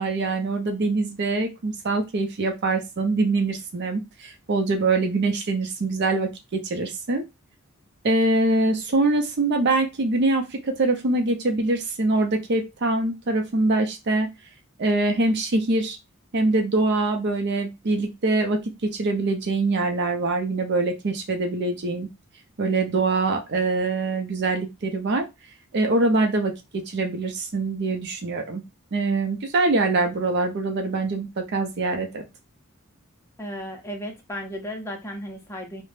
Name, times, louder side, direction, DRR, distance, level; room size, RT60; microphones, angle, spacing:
voice 1, 0.0-7.2 8.0-14.3 14.8-16.0 16.3-22.1 22.6-25.2 25.7-28.6 28.9-32.2, right 2 dB, 55° right, 0.5 m, -24 dB
voice 2, 33.4-35.8, equal, 15° left, 0.5 m, -34 dB
2.5 x 2.1 x 3.2 m
head